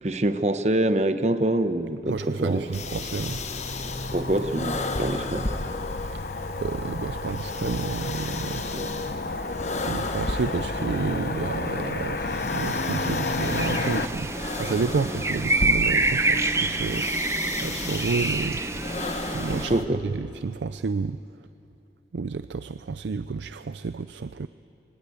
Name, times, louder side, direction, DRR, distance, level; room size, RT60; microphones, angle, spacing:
voice 1, 0.0-2.7 4.1-5.5 8.7-8.9 19.5-20.0, right 1 dB, 40° right, 10 dB, 0.9 m, -25 dB
Motor vehicle (road), 2.1-14.1, left 3 dB, 55° left, 0.9 m, -32 dB
voice 2, 2.1-3.4 6.6-8.6 9.8-14.3 14.6-17.0 17.6-18.6 19.3-19.8 20.0-21.2 22.1-24.5, right 4 dB, 85° right, 12 dB, 0.4 m, -30 dB
sound 1, 2.7-19.8, left 2 dB, 40° left, 1.2 m, -35 dB
sound 2, 13.4-19.7, right 2 dB, 15° right, 0.6 m, -27 dB
23.5 x 19.5 x 8.4 m, 2.8 s
head